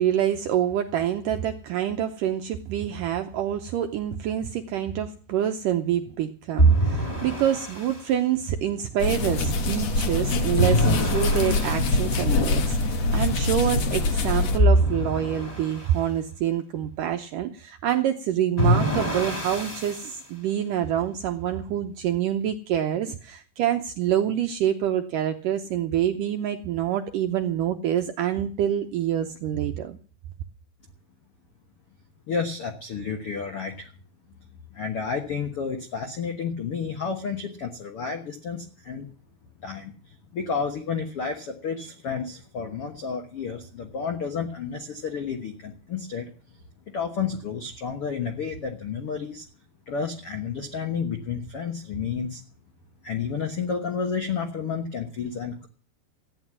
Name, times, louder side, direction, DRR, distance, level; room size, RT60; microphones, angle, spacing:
voice 1, 0.0-30.0, right 10 dB, 80° right, 5 dB, 1.9 m, -26 dB
sound 1, 6.6-8.0 10.6-12.1 14.6-15.9 18.6-20.1, right 1 dB, 15° left, 1.4 m, -23 dB
sound 2, 9.0-14.6, left 3 dB, 65° left, 1.7 m, -24 dB
voice 2, 32.3-33.9 34.7-39.1 39.6-39.9 40.3-46.3 46.9-49.4 49.9-52.4 53.0-55.7, left 6 dB, 85° left, 4 dB, 1.2 m, -31 dB
14.0 x 9.8 x 7.4 m, 0.40 s
omnidirectional pair, 4.8 m